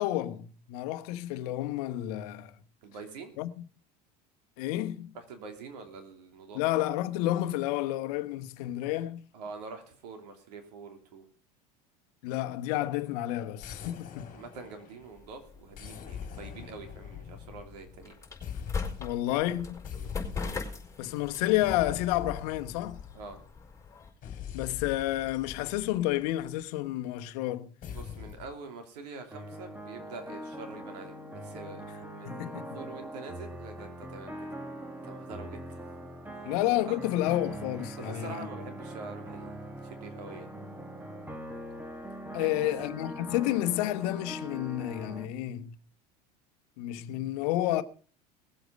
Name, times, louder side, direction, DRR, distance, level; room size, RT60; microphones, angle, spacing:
voice 1, 0.0-2.5 3.4-3.6 4.6-5.2 6.5-9.3 12.2-14.4 19.0-19.8 21.0-23.0 24.5-27.7 32.2-32.8 36.4-38.5 42.3-45.8 46.8-47.8, left 14 dB, 70° left, 1.0 m, -30 dB
voice 2, 2.8-3.3 5.1-6.6 9.3-11.2 14.3-18.2 19.9-20.1 23.1-23.4 27.9-34.5 35.0-35.8 36.3-36.4 36.9-37.0 38.0-40.5 42.3-42.7, right 4 dB, 75° right, 3.1 m, -45 dB
sound 1, 13.6-15.2 15.7-18.1 18.4-19.2 19.8-20.9 21.6-23.5 24.2-26.6 27.8-28.6, left 8 dB, 40° left, 2.6 m, -43 dB
sound 2, 15.0-24.1, left 4 dB, 15° left, 4.8 m, -41 dB
sound 3, 29.3-45.3, equal, 10° right, 2.1 m, -42 dB
19.0 x 8.0 x 5.2 m
hypercardioid pair, 85°, 21 cm